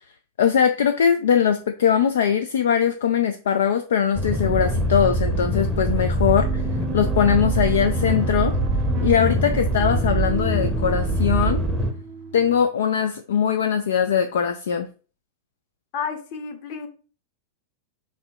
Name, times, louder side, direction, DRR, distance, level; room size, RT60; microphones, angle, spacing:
voice 1, 0.4-6.6 6.9-8.5 9.0-11.6 12.3-14.9, left 8 dB, 60° left, 7 dB, 0.3 m, -21 dB
sound 1, 4.1-11.9, right 1 dB, ahead, 0.7 m, -23 dB
sound 2, 6.3-12.6, right 7 dB, 45° right, 0.5 m, -36 dB
voice 2, 15.9-16.9, left 6 dB, 45° left, 4 dB, 0.9 m, -31 dB
3.0 x 2.8 x 4.5 m, 0.37 s
figure-of-eight pair, 90°, 0 cm